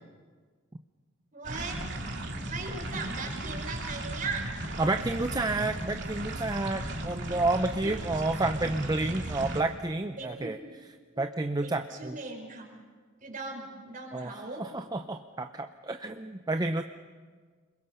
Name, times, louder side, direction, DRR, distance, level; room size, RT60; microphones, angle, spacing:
voice 1, 1.3-2.1 2.4-4.5 7.3-7.4 7.8-8.2 10.2-10.6 11.1-11.2 11.6-12.7 13.2-14.6, right 3 dB, 45° right, 1 dB, 5.1 m, -39 dB
sound 1, 1.4-9.6, right 1 dB, 60° right, 2.8 m, -36 dB
voice 2, 4.8-10.6 11.2-12.2 14.1-16.8, right 2 dB, 20° right, 7 dB, 0.6 m, -30 dB
30.0 x 21.5 x 5.6 m, 1.5 s
head